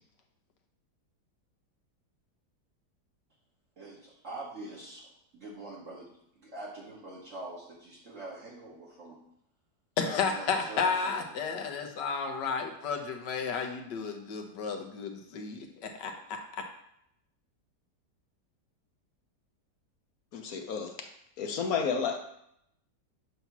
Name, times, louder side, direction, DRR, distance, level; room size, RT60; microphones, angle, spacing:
voice 1, 3.8-6.1 6.3-9.2 10.0-11.5, right 2 dB, 50° right, -6 dB, 1.4 m, -44 dB
voice 2, 10.0-16.6, left 5 dB, 85° left, 3 dB, 1.5 m, -32 dB
voice 3, 20.3-21.0 21.4-22.2, left 6 dB, 65° left, 5 dB, 1.1 m, -31 dB
8.1 x 2.8 x 5.9 m, 0.75 s
omnidirectional pair, 1.8 m